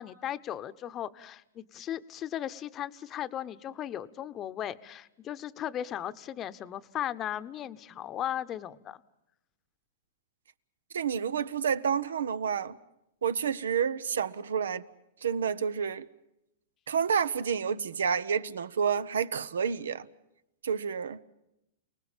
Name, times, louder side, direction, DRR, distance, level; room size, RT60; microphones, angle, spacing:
voice 1, 0.0-9.0, left 11 dB, 30° left, 0.9 m, -36 dB
voice 2, 10.9-12.8 13.2-14.8 15.2-16.1 16.9-20.1 20.6-21.2, right 7 dB, 90° right, 0.9 m, -29 dB
29.0 x 19.5 x 7.3 m
hypercardioid pair, 135°, 0 cm